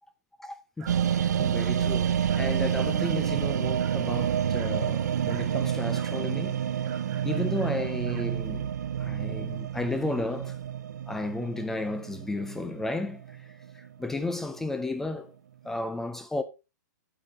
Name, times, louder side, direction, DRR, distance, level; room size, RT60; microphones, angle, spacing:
voice 1, 0.4-6.6 7.2-8.7 9.0-10.6 11.1-13.2 13.7-15.3 15.6-16.4, left 2 dB, 5° left, 0.4 m, -33 dB
Dog, 0.8-1.0 1.6-1.8 2.3-2.6 3.0-3.3 3.8-4.0 4.5-4.8 5.3-5.5 5.9-6.2 6.8-8.3, right 7 dB, 20° right, 1.4 m, -49 dB
sound 1, 0.9-13.9 14.2-14.3, right 9 dB, 70° right, 0.8 m, -29 dB
8.8 x 6.5 x 4.1 m
hypercardioid pair, 165°, 10 cm